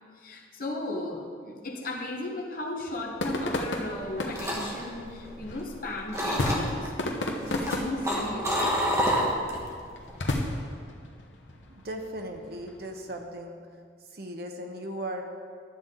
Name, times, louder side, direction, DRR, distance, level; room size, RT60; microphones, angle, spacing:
voice 1, 0.2-8.7, left 2 dB, 50° left, 1 dB, 1.2 m, -36 dB
sound 1, 2.8-13.1, left 1 dB, 80° left, 0.9 m, -34 dB
sound 2, 3.9-5.8 6.1-6.9 7.4-9.7 10.0-10.3, equal, 15° right, 1.2 m, -28 dB
voice 2, 11.7-13.6 14.1-15.2, right 1 dB, 55° right, 3 dB, 0.9 m, -37 dB
12.0 x 7.3 x 3.8 m, 2.1 s
head